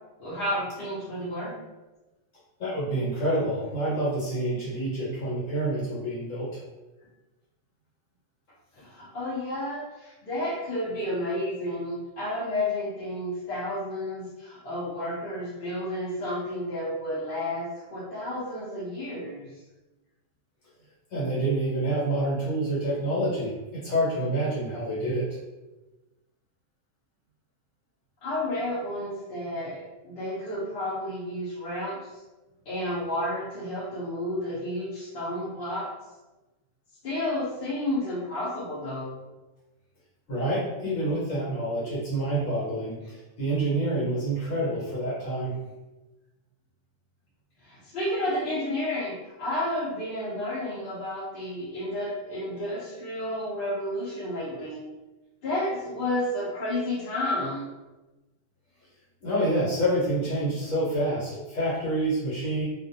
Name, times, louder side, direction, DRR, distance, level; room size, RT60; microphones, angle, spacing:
voice 1, 0.2-1.5 8.8-19.5 28.2-32.1 32.7-35.9 37.0-39.1 47.6-54.8 55.4-57.7, left 1 dB, 55° left, -7 dB, 0.7 m, -31 dB
voice 2, 2.6-6.5 21.1-25.3 40.3-45.6 59.2-62.6, right 1 dB, 70° left, -8 dB, 1.2 m, -27 dB
2.5 x 2.1 x 2.6 m, 1.1 s
omnidirectional pair, 1.4 m